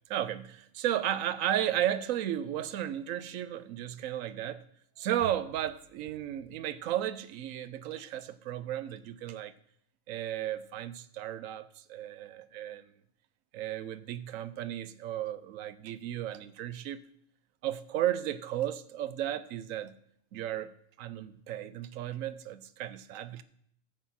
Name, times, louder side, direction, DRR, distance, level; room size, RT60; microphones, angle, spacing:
voice 1, 0.1-4.6 5.0-9.5 10.1-12.9 13.5-17.0 17.6-20.0 20.3-23.4, right 11 dB, 85° right, 1.0 m, -34 dB
13.5 x 7.8 x 4.2 m
omnidirectional pair, 1.4 m